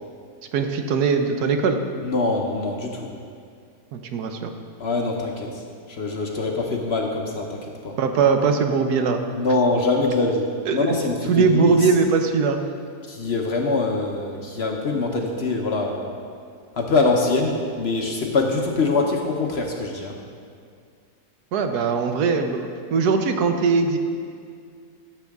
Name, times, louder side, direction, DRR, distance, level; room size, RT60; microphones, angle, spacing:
voice 1, 0.5-1.8 3.9-4.5 8.0-9.2 10.7-11.0 11.3-12.6 21.5-24.0, right 5 dB, 80° right, 6 dB, 1.3 m, -20 dB
voice 2, 2.0-3.1 4.8-7.9 9.3-11.9 13.1-16.1 16.8-20.2, left 3 dB, 50° left, 1 dB, 0.9 m, -24 dB
14.5 x 6.9 x 3.6 m, 2.2 s
omnidirectional pair, 1.7 m